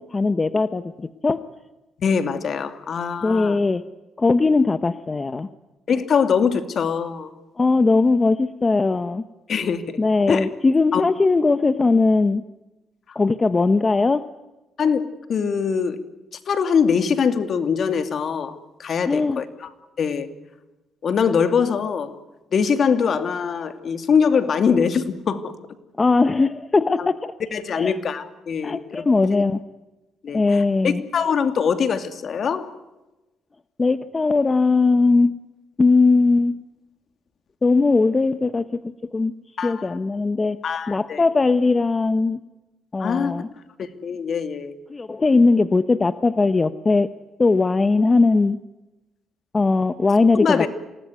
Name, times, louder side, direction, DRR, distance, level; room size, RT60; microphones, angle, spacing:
voice 1, 0.0-1.4 3.2-3.8 4.2-5.5 7.6-9.2 10.0-12.4 13.1-14.3 19.1-19.4 26.0-27.3 27.7-28.0 28.6-29.6 30.3-31.0 33.8-35.3 35.8-36.5 37.6-39.3 39.6-40.6 40.9-42.4 42.9-43.5 44.9-47.1 47.4-48.6 49.5-50.7, left 3 dB, 25° left, 12 dB, 1.0 m, -19 dB
voice 2, 2.0-3.6 5.9-7.3 9.5-9.8 10.3-10.5 10.9-11.0 14.8-15.0 15.3-16.0 16.5-19.7 20.0-20.3 21.0-22.2 22.5-25.5 27.0-27.1 27.5-29.0 29.3-29.4 30.2-32.7 39.6-40.0 40.6-41.2 43.0-43.3 43.8-44.7 50.3-50.7, left 6 dB, 55° left, 9 dB, 2.6 m, -22 dB
27.5 x 19.5 x 9.4 m, 1.0 s
cardioid pair, 90°, 0 cm